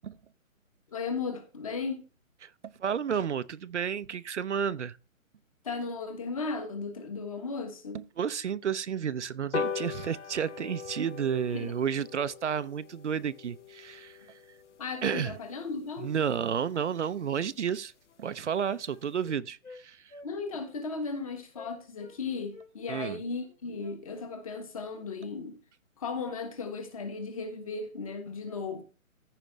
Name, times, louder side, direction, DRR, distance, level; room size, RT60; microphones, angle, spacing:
voice 1, 0.9-2.0 5.6-8.0 11.5-11.7 14.8-16.1 20.2-25.6 26.0-28.8, left 4 dB, 25° left, 1.3 m, -36 dB
voice 2, 2.8-5.0 7.9-14.4 15.0-15.3 16.0-17.9 18.2-20.1 22.9-23.2, right 7 dB, 55° right, 0.5 m, -31 dB
sound 1, 9.5-16.3 16.7-16.8 17.1-17.2 17.5-17.6 17.9-18.0 18.3-18.6 19.0-19.1, left 6 dB, 55° left, 0.9 m, -40 dB
Wind instrument woodwind instrument, 17.6-17.7 18.0-19.8 20.1-20.3 20.6-20.7 21.1-21.3 21.5-22.2 22.5-24.4, left 3 dB, 85° left, 3.5 m, -52 dB
14.5 x 5.0 x 3.2 m
hypercardioid pair, 170°, 41 cm